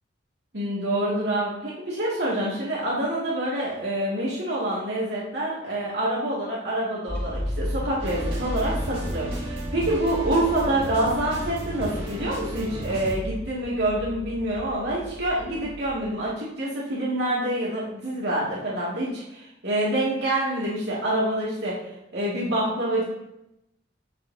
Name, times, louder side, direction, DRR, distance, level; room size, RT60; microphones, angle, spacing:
voice 1, 0.5-21.8 22.1-23.0, right 1 dB, 60° right, -7 dB, 2.4 m, -26 dB
sound 1, 7.1-16.3, equal, 5° left, 1.1 m, -34 dB
sound 2, 8.0-13.1, right 1 dB, 30° right, 3.7 m, -35 dB
16.0 x 6.9 x 2.8 m, 0.88 s
head